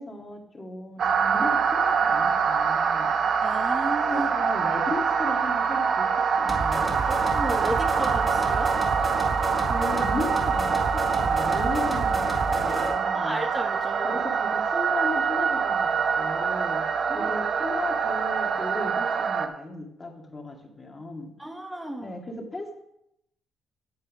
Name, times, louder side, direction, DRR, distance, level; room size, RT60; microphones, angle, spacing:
voice 1, 0.0-3.2 4.1-6.1 6.4-7.1 9.6-13.4 14.0-15.9 16.2-16.8 17.1-21.3 22.0-22.7, left 2 dB, 25° left, 0 dB, 2.2 m, -36 dB
sound 1, 1.0-19.5, right 6 dB, 60° right, 0.9 m, -25 dB
voice 2, 3.4-4.3 7.0-8.7 13.1-14.2 17.1-17.3 21.4-22.2, right 1 dB, 10° right, 3 dB, 1.7 m, -33 dB
sound 2, 6.5-13.0, equal, 10° left, 2.5 m, -31 dB
8.6 x 7.5 x 5.1 m, 0.77 s
cardioid pair, 90°, 0 cm